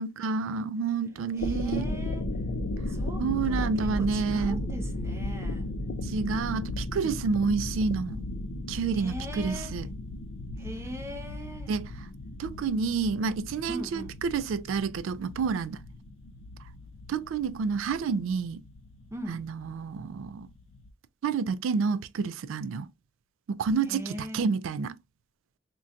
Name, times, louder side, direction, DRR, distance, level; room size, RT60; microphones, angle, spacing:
voice 1, 0.0-1.9 3.2-4.6 6.0-8.2 8.7-9.9 11.7-11.9 12.4-15.8 17.1-18.6 19.3-20.5 21.2-22.9 23.5-25.0, right 5 dB, 90° right, 0.3 m, -29 dB
sound 1, 1.2-20.9, left 1 dB, 85° left, 0.5 m, -35 dB
voice 2, 1.3-2.3 2.9-5.7 6.1-6.8 8.9-9.8 10.6-11.7 13.7-14.2 19.1-19.5 23.8-24.5, equal, 15° right, 0.4 m, -41 dB
3.8 x 2.2 x 2.4 m
head